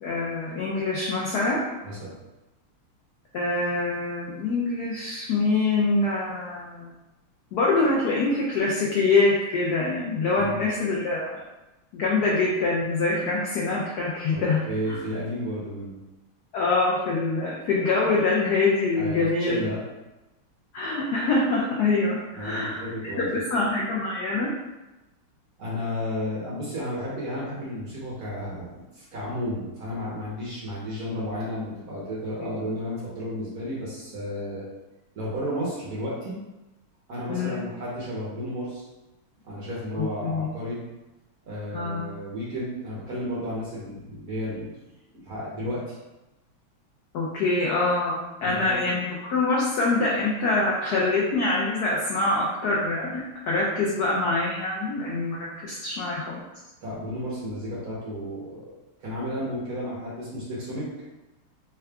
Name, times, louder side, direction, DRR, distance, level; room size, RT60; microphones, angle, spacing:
voice 1, 0.0-1.6 3.3-6.9 7.5-11.4 11.9-15.0 16.5-19.6 20.7-22.9 23.2-24.5 32.4-32.5 37.3-37.6 40.0-40.5 41.7-42.0 47.1-56.4, left 3 dB, 80° left, -4 dB, 0.8 m, -25 dB
voice 2, 1.8-2.1 10.4-10.6 14.3-16.0 18.9-19.8 22.4-23.6 25.6-34.7 35.1-36.4 37.1-38.8 39.4-40.8 41.5-44.8 45.2-45.9 48.4-48.8 56.8-58.7 59.0-60.8, equal, 55° right, -7 dB, 1.2 m, -32 dB
3.7 x 2.3 x 3.3 m, 1.0 s
omnidirectional pair, 2.3 m